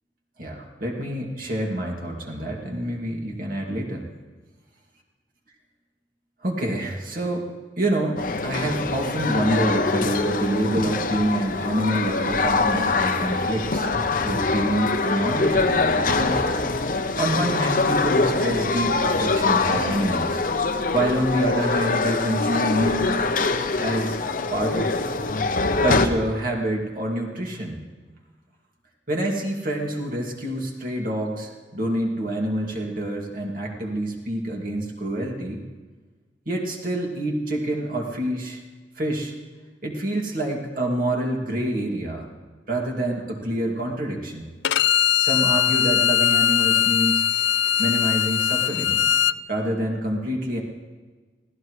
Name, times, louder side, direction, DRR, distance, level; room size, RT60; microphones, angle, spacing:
voice 1, 0.4-4.1 6.4-7.5 7.8-13.9 14.2-16.4 17.2-20.4 20.9-23.2 23.8-24.2 24.5-24.9 25.8-27.9 29.1-35.6 36.5-38.6 39.0-39.3 39.8-42.3 42.7-44.4 45.2-47.3 47.8-49.0 49.5-50.6, right 1 dB, 50° right, -1 dB, 2.5 m, -27 dB
sound 1, 8.2-26.1, left 3 dB, 50° left, 0.8 m, -24 dB
Bowed string instrument, 44.6-49.4, left 10 dB, 85° left, 0.4 m, -20 dB
25.0 x 16.5 x 3.3 m, 1.3 s
head